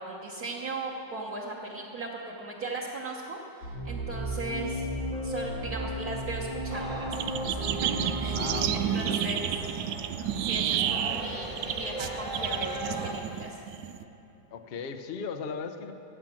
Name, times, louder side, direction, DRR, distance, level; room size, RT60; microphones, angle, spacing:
voice 1, 0.0-4.9 5.2-7.2 7.8-7.9 8.2-9.5 10.4-13.6, right 2 dB, 55° right, -3 dB, 1.5 m, -37 dB
sound 1, 3.6-8.7, equal, 85° left, 3.0 m, -34 dB
sound 2, 6.7-13.1, right 1 dB, 5° right, 1.0 m, -38 dB
sound 3, 7.1-14.0, right 10 dB, 75° right, 1.1 m, -31 dB
voice 2, 8.4-9.4 14.5-15.9, left 5 dB, 70° left, 7 dB, 0.5 m, -37 dB
15.5 x 8.8 x 7.5 m, 3.0 s
omnidirectional pair, 2.1 m